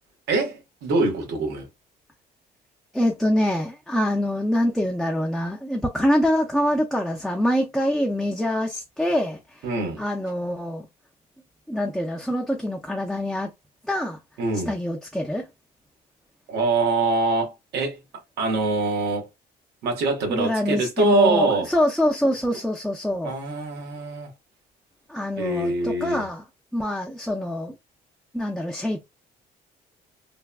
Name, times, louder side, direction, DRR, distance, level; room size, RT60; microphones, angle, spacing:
voice 1, 0.3-1.7 9.6-10.0 14.4-14.7 16.5-18.0 18.4-19.3 19.8-21.7 23.2-24.3 25.4-26.2, right 3 dB, 75° right, 1.4 m, -24 dB
voice 2, 2.9-9.7 10.0-10.9 11.7-13.5 13.8-14.2 14.7-15.5 20.3-23.4 25.1-26.4 26.7-27.8 28.3-29.1, left 1 dB, ahead, 0.5 m, -25 dB
3.4 x 2.2 x 2.3 m
cardioid pair, 110°, 17 cm